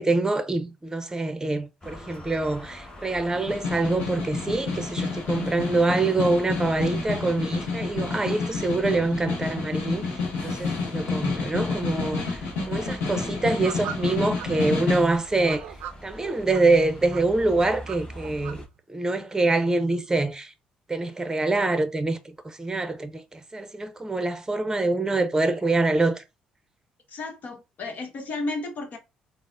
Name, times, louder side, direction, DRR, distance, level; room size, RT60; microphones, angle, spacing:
voice 1, 0.0-10.1 10.4-15.6 16.0-18.6 18.9-20.5 20.9-26.2, right 2 dB, 20° right, 0.7 m, -25 dB
sound 1, 1.8-18.7, left 1 dB, 25° left, 1.2 m, -44 dB
Snare drum, 3.3-15.1, left 4 dB, 80° left, 1.1 m, -29 dB
sound 2, 13.4-14.5 15.1-16.6 17.1-18.5, right 10 dB, 75° right, 0.4 m, -39 dB
voice 2, 27.1-29.0, left 2 dB, 55° left, 1.0 m, -33 dB
3.9 x 2.1 x 2.4 m
hypercardioid pair, 55°, 3 cm